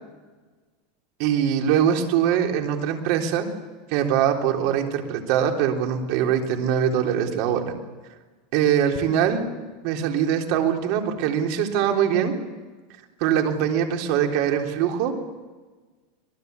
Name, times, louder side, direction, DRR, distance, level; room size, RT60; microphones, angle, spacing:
voice 1, 1.2-3.5 3.9-7.7 8.5-9.5 9.8-12.3 13.2-15.2, right 9 dB, 55° right, 3 dB, 3.7 m, -22 dB
26.0 x 19.5 x 8.2 m, 1.3 s
supercardioid pair, 150°, 0 cm